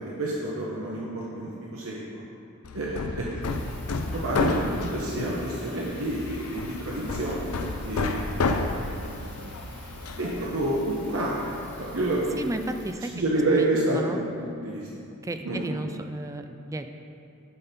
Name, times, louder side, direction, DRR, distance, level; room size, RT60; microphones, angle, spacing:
voice 1, 0.0-2.2 2.7-3.4 4.1-8.5 9.0-9.2 10.2-11.5 11.8-12.5 13.1-14.9 15.4-15.6, right 1 dB, 65° right, -4 dB, 1.0 m, -29 dB
Hammer, 2.6-10.5, left 3 dB, 80° left, 0.5 m, -31 dB
sound 1, 3.4-12.9, left 1 dB, 10° left, 1.7 m, -46 dB
voice 2, 12.4-13.1 13.5-14.2 15.2-16.9, right 2 dB, 15° right, 7 dB, 0.3 m, -33 dB
10.5 x 5.4 x 4.3 m, 2.7 s
head